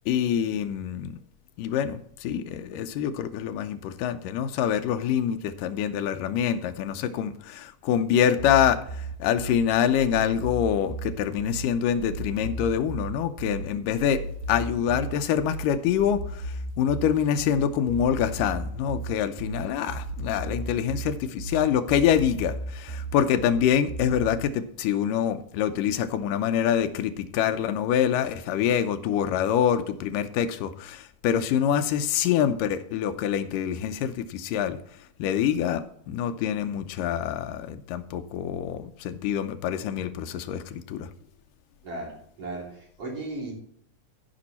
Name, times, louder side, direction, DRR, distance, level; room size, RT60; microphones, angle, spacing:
voice 1, 0.1-1.2 1.6-34.8 35.2-41.1, left 9 dB, 80° left, 2.3 m, -26 dB
sound 1, 8.4-24.4, right 2 dB, 80° right, 2.5 m, -35 dB
voice 2, 41.8-43.5, right 2 dB, 45° right, 3.7 m, -36 dB
14.5 x 5.4 x 4.2 m
omnidirectional pair, 3.9 m